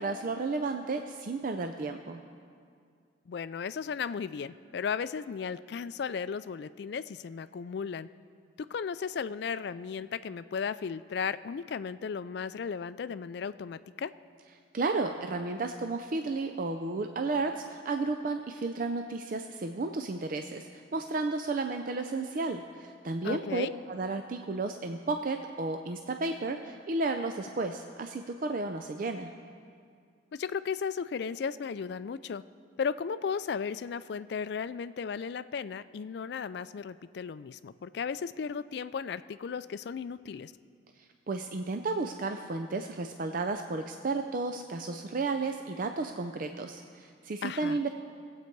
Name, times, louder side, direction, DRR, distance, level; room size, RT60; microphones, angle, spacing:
voice 1, 0.0-2.2 14.7-29.3 41.3-47.9, right 3 dB, 45° right, 6 dB, 0.4 m, -33 dB
voice 2, 3.3-8.1 8.6-14.1 23.2-23.7 30.3-32.4 32.8-40.5 47.4-47.8, left 6 dB, 55° left, 14 dB, 0.3 m, -35 dB
20.0 x 8.2 x 4.6 m, 2.3 s
head